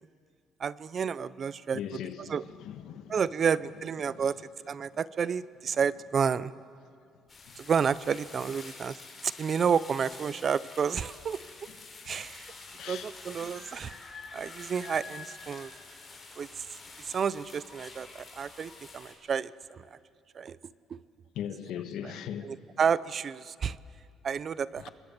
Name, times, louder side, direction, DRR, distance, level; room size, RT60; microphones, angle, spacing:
voice 1, 0.6-1.8 2.2-2.4 3.1-6.5 7.6-9.0 9.2-11.4 12.0-12.5 12.9-13.9 14.3-15.7 16.4-16.6 17.0-20.0 20.3-20.6 20.9-21.0 22.0-22.1 22.4-23.8 24.2-24.9, right 6 dB, 40° right, 0.5 m, -30 dB
voice 2, 1.7-3.2 4.0-4.2 11.7-11.8 12.1-12.2 12.8-13.1 13.4-13.5 21.3-22.6 24.8-24.9, left 9 dB, 75° left, 1.5 m, -39 dB
sound 1, 7.3-19.1, left 3 dB, 25° left, 4.8 m, -47 dB
28.5 x 22.0 x 7.2 m
cardioid pair, 135°, 0 cm